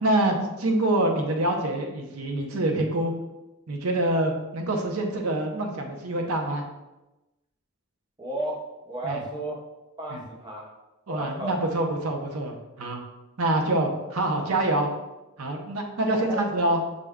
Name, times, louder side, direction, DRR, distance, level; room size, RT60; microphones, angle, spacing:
voice 1, 0.0-3.1 3.7-6.6 9.0-9.2 10.1-10.2 11.1-13.0 13.4-14.9 15.4-16.8, right 1 dB, 75° right, 3 dB, 0.7 m, -26 dB
voice 2, 8.2-9.6 10.0-10.7 11.1-11.8 14.0-14.1 16.6-16.7, right 1 dB, 20° right, -2 dB, 0.7 m, -34 dB
6.4 x 2.2 x 3.5 m, 0.99 s
head